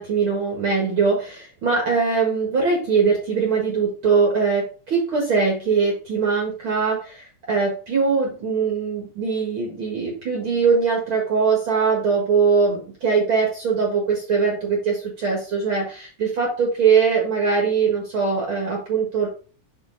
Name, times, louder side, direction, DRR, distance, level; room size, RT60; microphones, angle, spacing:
voice 1, 0.0-19.3, right 5 dB, 50° right, -1 dB, 2.4 m, -21 dB
6.3 x 5.5 x 4.0 m, 0.37 s
omnidirectional pair, 3.3 m